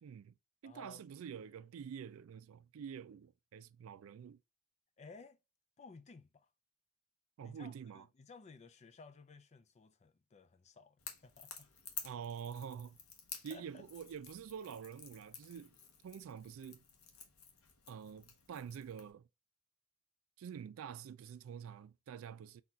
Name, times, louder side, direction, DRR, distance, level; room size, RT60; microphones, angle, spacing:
voice 1, 0.0-0.3 0.6-4.4 7.4-8.1 12.0-13.0 13.4-15.7 16.0-16.8 17.9-19.2 20.4-22.6, right 7 dB, 70° right, 0.3 m, -47 dB
voice 2, 0.6-1.0 5.0-5.4 5.8-6.5 7.4-11.0 11.2-11.7 13.5-13.8, left 4 dB, 30° left, 0.4 m, -56 dB
Crackle / Crack, 11.0-19.1, left 7 dB, 90° left, 0.9 m, -52 dB
4.0 x 2.4 x 4.3 m
head